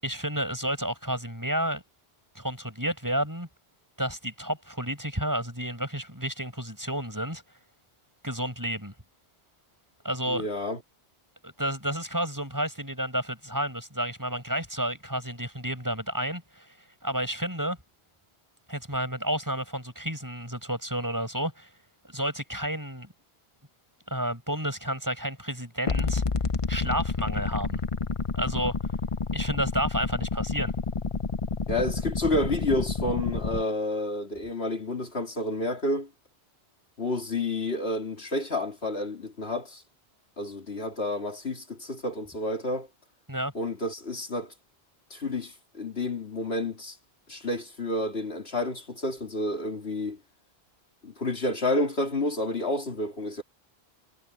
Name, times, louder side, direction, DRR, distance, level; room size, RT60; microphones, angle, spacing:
voice 1, 0.0-1.8 2.4-3.5 4.0-7.4 8.2-8.9 10.0-10.5 11.4-16.7 17.0-17.8 18.7-21.7 22.0-23.1 24.1-26.2 26.7-27.8 28.4-28.8 29.3-30.7 43.3-43.5, right 1 dB, 15° right, 7.4 m, -31 dB
voice 2, 10.3-10.8 31.7-36.1 37.0-39.8 40.4-42.9 43.5-44.5 45.1-47.0 47.3-50.2 51.0-53.4, left 2 dB, 70° left, 3.2 m, -30 dB
sound 1, 25.9-33.6, left 4 dB, 35° left, 0.7 m, -29 dB
omnidirectional pair, 1.1 m